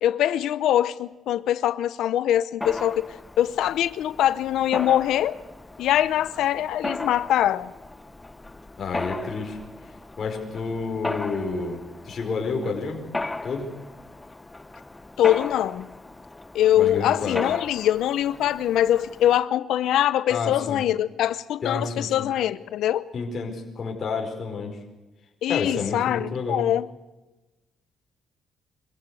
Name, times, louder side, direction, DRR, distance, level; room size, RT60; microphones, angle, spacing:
voice 1, 0.0-3.1 3.4-5.4 5.8-7.7 15.2-15.9 16.5-23.1 25.4-26.9, left 11 dB, 80° left, 0.7 m, -23 dB
Mechanisms, 2.6-19.4, left 2 dB, 15° left, 1.0 m, -37 dB
voice 2, 8.8-9.6 10.2-13.0 13.4-13.7 16.7-17.4 20.3-20.8 21.6-22.3 23.1-24.8 25.5-26.7, left 4 dB, 50° left, 4.9 m, -30 dB
25.0 x 15.0 x 8.3 m
cardioid pair, 90°, 0 cm